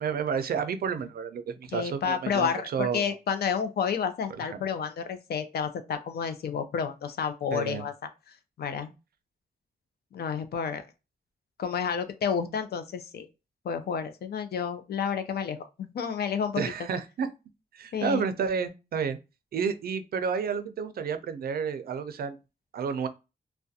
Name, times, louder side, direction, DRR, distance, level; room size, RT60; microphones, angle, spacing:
voice 1, 0.0-3.1 4.4-4.6 7.5-7.9 16.6-17.3 17.7-19.2 19.5-22.4 22.7-23.1, right 6 dB, 75° right, 0.4 m, -30 dB
voice 2, 1.7-7.9 8.6-8.9 10.1-10.8 11.6-13.3 13.6-16.7 17.9-18.2, left 7 dB, 85° left, 0.4 m, -30 dB
2.4 x 2.1 x 2.6 m
wide cardioid pair, 180°, 16 cm